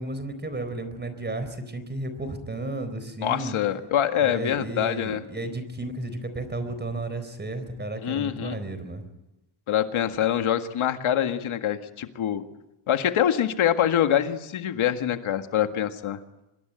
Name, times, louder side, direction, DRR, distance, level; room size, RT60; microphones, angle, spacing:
voice 1, 0.0-3.6 4.2-9.0, right 2 dB, 20° right, 11 dB, 4.1 m, -33 dB
voice 2, 3.2-5.2 8.0-8.6 9.7-12.4 12.9-16.2, left 10 dB, 75° left, 7 dB, 1.9 m, -25 dB
25.0 x 22.0 x 9.0 m, 0.92 s
wide cardioid pair, 150°, 49 cm